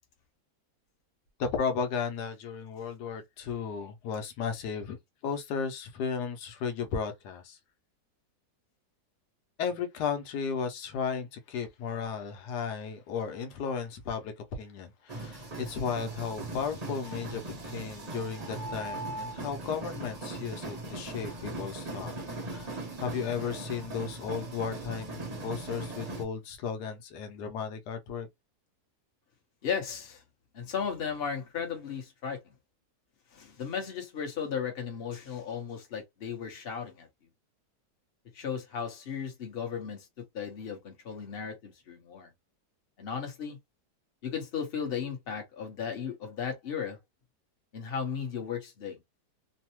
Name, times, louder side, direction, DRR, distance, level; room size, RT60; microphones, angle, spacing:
voice 1, 1.4-5.0 5.2-7.6 9.6-22.1 22.5-28.3, left 6 dB, 85° left, 1.2 m, -34 dB
sound 1, 15.1-26.2, right 2 dB, 35° right, 0.7 m, -39 dB
voice 2, 29.6-30.2 30.5-32.4 33.3-37.1 38.3-40.0 40.3-42.3 43.0-43.6 44.2-47.0 47.7-49.0, left 7 dB, 45° left, 1.0 m, -35 dB
3.2 x 2.0 x 2.9 m
omnidirectional pair, 1.7 m